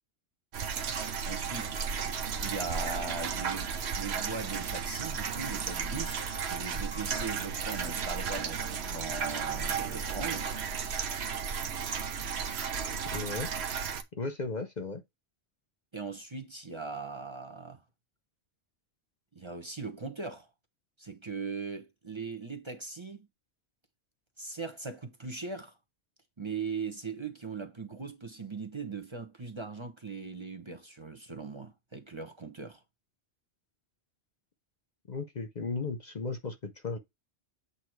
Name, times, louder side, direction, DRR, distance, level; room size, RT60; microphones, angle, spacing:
sound 1, 0.5-14.0, right 6 dB, 70° right, 1.1 m, -34 dB
voice 1, 1.3-1.8 2.4-10.5 15.9-17.8 19.3-20.5 21.0-23.3 24.4-25.8 26.4-32.8, right 4 dB, 25° right, 1.0 m, -39 dB
voice 2, 13.1-13.5 14.1-15.0 35.1-37.0, left 3 dB, 45° left, 0.8 m, -35 dB
8.2 x 2.9 x 4.6 m
omnidirectional pair, 1.1 m